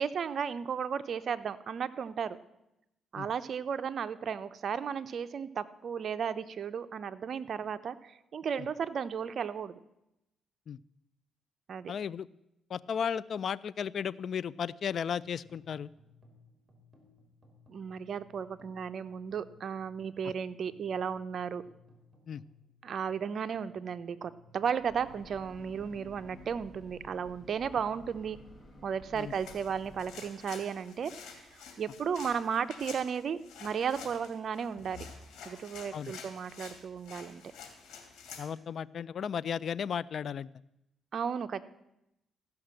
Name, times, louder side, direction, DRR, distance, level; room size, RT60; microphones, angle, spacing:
voice 1, 0.0-2.4 3.1-9.8 11.7-11.9 17.7-21.6 22.8-28.4 28.8-31.1 31.5-35.1 35.5-37.4 41.1-41.6, right 7 dB, 55° right, 11 dB, 0.6 m, -34 dB
voice 2, 11.9-12.3 12.7-15.9 22.3-22.4 29.1-29.3 35.9-36.1 38.4-40.5, left 7 dB, 55° left, 20 dB, 0.4 m, -34 dB
sound 1, 15.1-27.5, left 3 dB, 25° right, 3.1 m, -62 dB
Breathing / Train, 24.7-30.3, left 1 dB, 20° left, 2.2 m, -53 dB
sound 2, 29.2-38.5, left 5 dB, 75° left, 2.4 m, -49 dB
14.5 x 5.9 x 7.6 m, 0.87 s
cardioid pair, 90°, 0 cm